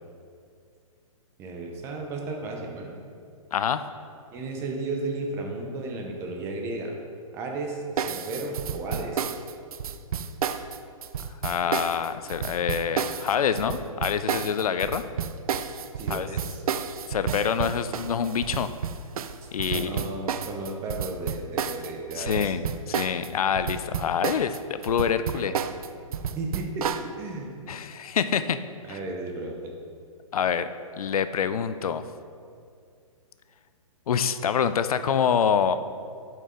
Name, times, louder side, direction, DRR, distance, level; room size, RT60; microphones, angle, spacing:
voice 1, 1.4-3.0 4.3-6.9 7.3-9.4 16.0-16.6 19.7-22.5 25.3-25.6 26.4-27.5 28.8-29.7, right 2 dB, 15° right, 1 dB, 0.5 m, -34 dB
voice 2, 3.5-3.8 11.4-15.0 16.1-16.3 17.1-18.7 19.5-19.9 22.2-25.5 27.7-28.6 28.9-29.0 30.3-30.7 31.0-32.0 34.1-35.8, left 7 dB, 90° left, 12 dB, 0.4 m, -26 dB
sound 1, 8.0-23.3 23.6-27.1, right 7 dB, 85° right, 0.4 m, -31 dB
8.0 x 4.4 x 3.7 m, 2.3 s
hypercardioid pair, 155°, 18 cm